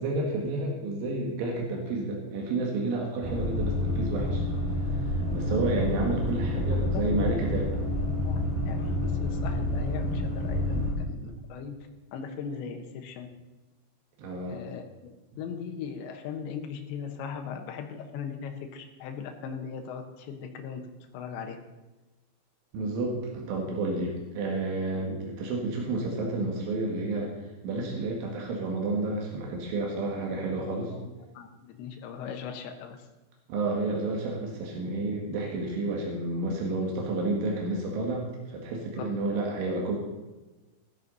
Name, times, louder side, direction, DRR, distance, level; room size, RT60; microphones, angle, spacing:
voice 1, 0.0-4.4 5.3-7.7 11.2-11.4 14.2-14.6 15.3-15.4 22.7-27.3 27.6-30.9 33.5-40.0, right 2 dB, 85° right, 0 dB, 4.4 m, -30 dB
sound 1, 3.2-10.9, left 1 dB, 65° right, 6.2 m, -28 dB
voice 2, 5.2-5.6 6.6-7.4 8.2-11.8 12.1-13.3 14.5-20.9 21.1-21.6 30.2-30.3 30.9-33.0 39.0-39.1, left 7 dB, 75° left, 4 dB, 3.5 m, -39 dB
15.0 x 12.5 x 4.1 m, 1.1 s
omnidirectional pair, 5.4 m